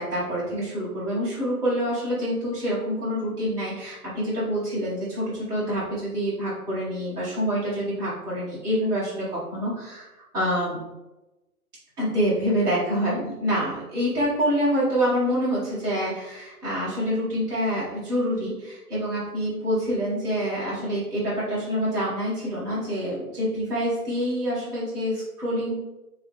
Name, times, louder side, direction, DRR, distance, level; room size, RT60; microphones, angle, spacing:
voice 1, 0.0-9.3 9.5-10.1 10.3-10.8 12.0-25.8, equal, 10° right, -11 dB, 1.3 m, -26 dB
3.5 x 3.2 x 3.5 m, 1.0 s
figure-of-eight pair, 135°, 45 cm